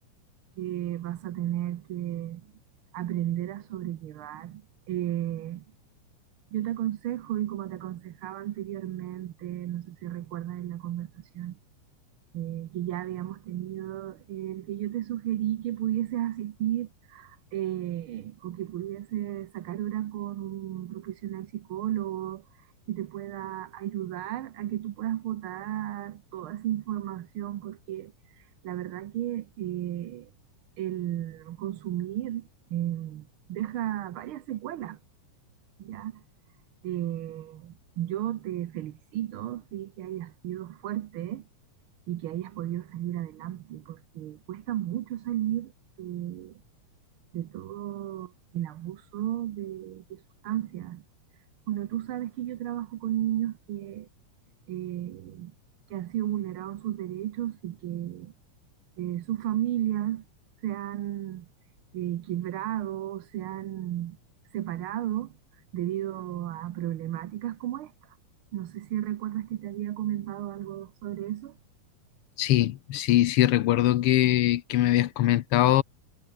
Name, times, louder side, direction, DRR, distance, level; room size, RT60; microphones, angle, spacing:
voice 1, 0.6-2.5 2.9-5.6 6.5-11.6 12.3-22.4 22.9-30.3 30.8-35.0 35.8-36.2 36.8-41.5 42.1-45.7 46.0-46.6 47.3-51.0 51.7-54.1 54.7-55.5 55.9-58.3 59.0-60.2 60.6-61.5 61.9-64.2 64.5-65.3 65.7-67.9 68.5-71.6, right 12 dB, 80° right, 1.2 m, -33 dB
voice 2, 72.4-75.8, left 14 dB, 80° left, 1.3 m, -22 dB
omnidirectional pair, 3.6 m